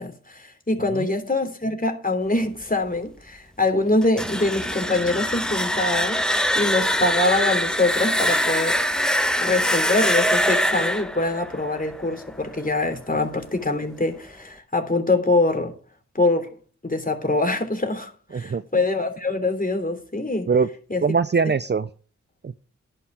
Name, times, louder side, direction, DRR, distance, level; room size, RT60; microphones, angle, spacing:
voice 1, 0.0-6.2 6.5-8.8 9.4-15.7 16.1-16.5 16.8-20.5 20.9-21.0, left 2 dB, 30° left, 3.3 m, -24 dB
sound 1, 4.0-12.8, equal, ahead, 1.6 m, -23 dB
voice 2, 21.0-21.9 22.4-22.5, right 5 dB, 35° right, 0.6 m, -22 dB
11.0 x 5.8 x 8.6 m
cardioid pair, 40°, 30 cm